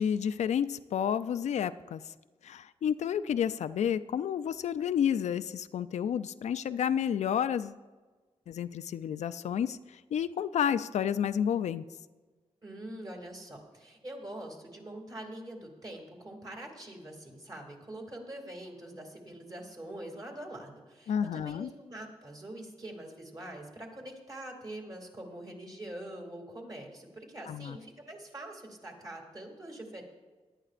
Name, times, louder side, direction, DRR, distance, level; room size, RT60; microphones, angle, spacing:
voice 1, 0.0-2.0 2.4-7.8 8.5-9.8 10.1-11.8 21.1-21.7 27.5-27.8, left 8 dB, 80° left, 12 dB, 0.4 m, -30 dB
voice 2, 12.6-30.0, right 1 dB, 35° right, 1 dB, 2.4 m, -44 dB
18.0 x 11.0 x 2.5 m, 1.3 s
wide cardioid pair, 115°, 12 cm